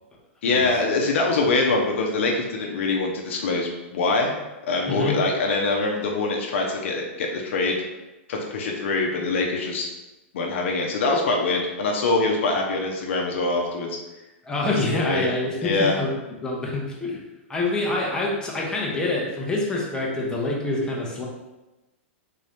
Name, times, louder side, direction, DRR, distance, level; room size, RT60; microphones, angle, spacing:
voice 1, 0.4-4.3 4.7-7.8 8.3-9.9 10.3-13.9 14.7-15.3 15.6-16.0, left 3 dB, 70° left, 0 dB, 0.7 m, -24 dB
voice 2, 4.9-5.2 14.4-16.1 16.4-17.2 17.5-21.3, left 2 dB, 10° left, -3 dB, 0.8 m, -26 dB
3.8 x 2.7 x 3.4 m, 1.0 s
hypercardioid pair, 125°, 7 cm